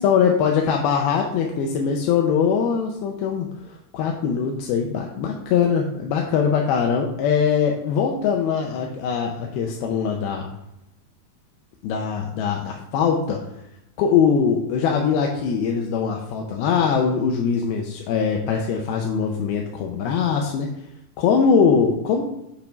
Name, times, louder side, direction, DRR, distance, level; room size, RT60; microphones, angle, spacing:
voice 1, 0.0-10.5 11.8-13.4 14.0-20.7 21.2-22.2, left 6 dB, 85° left, 1 dB, 2.6 m, -22 dB
8.3 x 3.5 x 5.1 m, 0.84 s
omnidirectional pair, 4.4 m